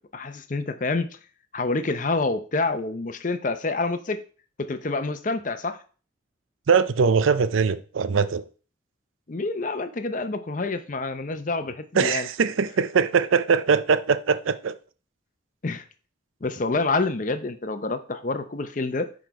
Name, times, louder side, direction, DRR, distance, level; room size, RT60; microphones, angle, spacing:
voice 1, 0.1-1.1 1.5-4.2 4.6-5.8 9.3-12.3 15.6-15.9 16.4-19.1, left 3 dB, 40° left, 0.6 m, -27 dB
voice 2, 6.7-8.5 11.9-14.8, right 5 dB, 80° right, 0.5 m, -21 dB
6.0 x 5.0 x 4.6 m
head